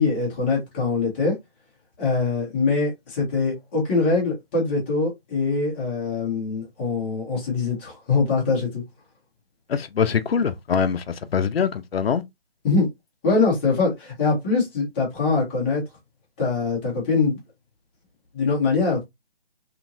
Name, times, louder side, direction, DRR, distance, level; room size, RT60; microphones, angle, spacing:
voice 1, 0.0-1.4 2.0-8.8 12.6-12.9 13.2-15.8 16.4-17.4 18.3-19.0, left 4 dB, 10° left, 0.7 m, -23 dB
voice 2, 9.7-12.2, left 7 dB, 75° left, 0.5 m, -23 dB
2.9 x 2.5 x 2.5 m
figure-of-eight pair, 150°, 30 cm